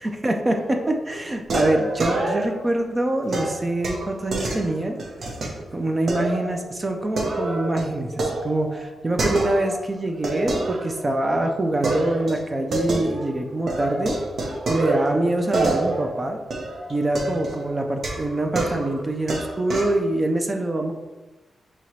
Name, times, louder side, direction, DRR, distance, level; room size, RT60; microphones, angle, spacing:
voice 1, 0.0-5.0 5.7-8.1 8.4-14.2 14.7-16.4 16.9-20.9, right 1 dB, 25° right, 4 dB, 0.4 m, -24 dB
sound 1, 0.5-1.0 1.5-2.7 3.3-5.5 6.1-6.6 6.9-9.8 10.2-11.3 11.8-13.4 13.7-20.0, right 2 dB, 60° right, 0.7 m, -27 dB
5.7 x 2.8 x 3.0 m, 1.1 s
wide cardioid pair, 130°, 0 cm